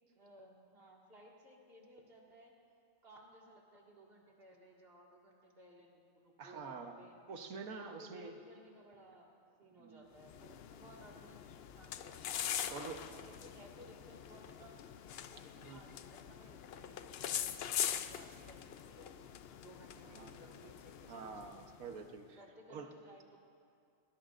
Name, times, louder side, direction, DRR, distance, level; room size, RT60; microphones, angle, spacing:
voice 1, 0.1-2.5 3.0-7.2 7.8-14.8 15.3-19.2 19.6-21.8 22.3-23.4, right 1 dB, 45° right, -2 dB, 2.2 m, -59 dB
voice 2, 6.4-7.0 7.3-8.3 9.8-10.1 12.7-13.0 15.6-15.8 20.0-20.3 21.1-22.4 22.7-22.9, right 5 dB, 90° right, 5 dB, 1.5 m, -47 dB
sound 1, 10.2-22.0, left 9 dB, 65° left, 0.6 m, -43 dB
21.0 x 20.0 x 2.5 m, 2.5 s
omnidirectional pair, 1.4 m